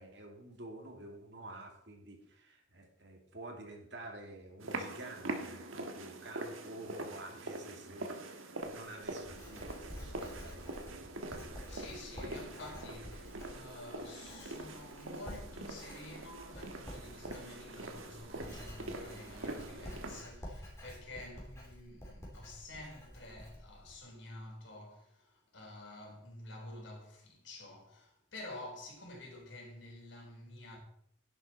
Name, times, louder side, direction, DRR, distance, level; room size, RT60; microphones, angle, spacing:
voice 1, 0.0-10.7 11.1-11.9 12.1-12.3, right 2 dB, 60° right, 2.4 m, -50 dB
sound 1, 4.6-20.2, right 2 dB, 90° right, 1.4 m, -44 dB
Writing, 8.6-24.0, equal, 15° left, 3.2 m, -50 dB
voice 2, 11.7-30.8, left 2 dB, 65° left, 3.9 m, -50 dB
11.0 x 10.5 x 4.2 m
head